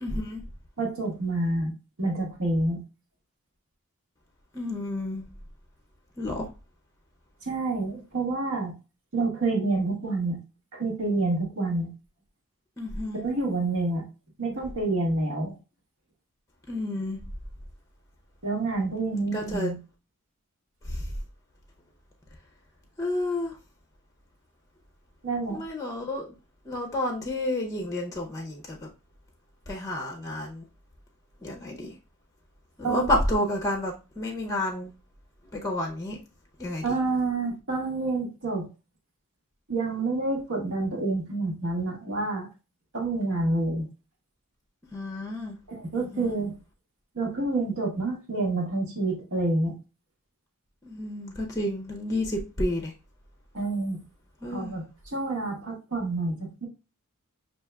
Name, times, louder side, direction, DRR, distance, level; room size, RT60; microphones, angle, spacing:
voice 1, 0.0-0.4 4.5-5.2 6.2-6.5 12.8-13.2 16.7-17.2 19.1-19.7 20.8-21.1 23.0-23.6 25.5-26.3 26.6-28.9 29.7-30.7 31.4-32.0 32.8-34.9 35.5-36.2 36.6-37.0 44.9-45.6 46.0-46.4 50.8-52.9 54.4-54.7, left 1 dB, 15° left, 0.6 m, -30 dB
voice 2, 0.8-1.7 2.0-2.8 7.5-8.7 9.1-10.4 10.7-11.9 13.1-14.0 14.4-15.6 18.4-19.8 25.2-25.6 32.8-33.1 36.8-38.7 39.7-42.5 42.9-43.9 45.7-46.5 47.1-49.7 53.5-54.0 54.5-56.7, right 2 dB, 70° right, 1.4 m, -28 dB
6.1 x 2.8 x 2.2 m
head